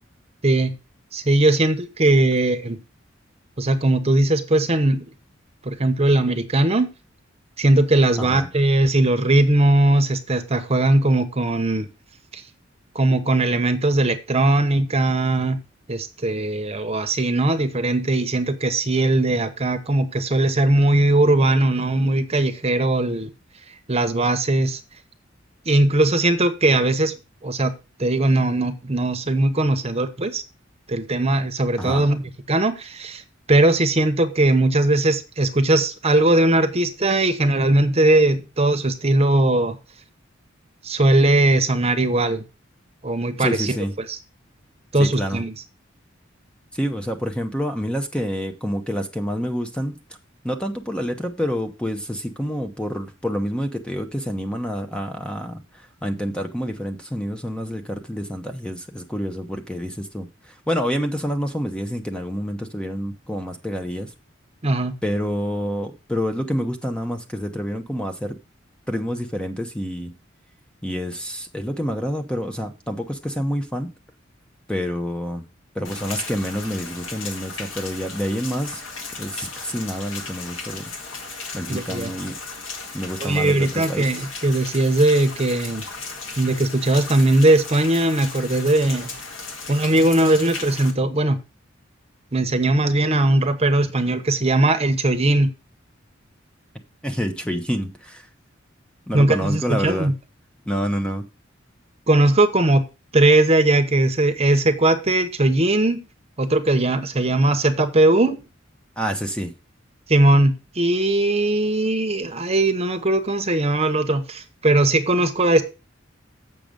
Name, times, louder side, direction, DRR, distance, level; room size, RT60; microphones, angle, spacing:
voice 1, 0.4-0.7 1.1-2.8 3.6-5.0 5.6-6.9 7.6-11.9 12.3-12.4 12.9-15.6 15.9-23.3 23.9-24.8 25.7-27.1 27.4-27.7 28.0-30.4 30.9-33.2 33.5-39.8 40.8-42.4 43.0-43.7 44.0-44.2 44.9-45.5 64.6-64.9 81.7-82.1 83.2-85.8 86.4-89.1 89.7-91.4 92.3-95.5 99.1-100.1 102.1-102.8 103.1-106.0 106.4-108.4 110.1-115.6, right 2 dB, 30° right, 1.0 m, -19 dB
voice 2, 8.2-8.5 31.8-32.0 43.4-43.9 45.0-45.4 46.7-50.0 50.4-64.1 65.0-68.4 68.9-70.1 70.8-73.9 74.7-75.4 75.7-78.8 79.2-80.9 81.5-82.4 82.9-84.1 97.0-98.3 99.1-100.1 100.7-101.3 109.0-109.5, equal, 5° left, 0.8 m, -27 dB
Rain, 75.8-90.9, left 4 dB, 80° left, 1.9 m, -36 dB
7.6 x 6.2 x 5.2 m
head